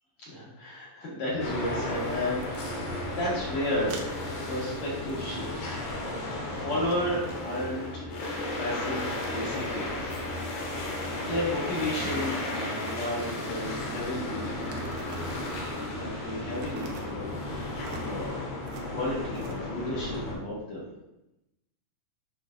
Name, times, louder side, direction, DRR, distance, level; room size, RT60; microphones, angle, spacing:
voice 1, 0.3-2.7 3.1-4.1 4.5-5.8 6.2-8.2 8.6-10.9 11.2-14.6 15.6-18.4 18.9-20.9, left 1 dB, 50° left, -6 dB, 2.8 m, -33 dB
sound 1, 1.3-18.1, right 1 dB, 60° right, 1.5 m, -42 dB
sound 2, 1.4-20.3, left 2 dB, 90° left, 3.2 m, -34 dB
sound 3, 2.4-2.6 3.9-4.1 4.9-5.9 6.2-7.6 8.7-9.4 9.8-10.9 12.2-13.7 14.6-15.7 16.5-17.2 17.8-18.1 18.6-18.9 19.3-19.5, right 4 dB, 80° right, 2.8 m, -47 dB
8.4 x 6.2 x 2.5 m, 0.93 s
omnidirectional pair, 4.4 m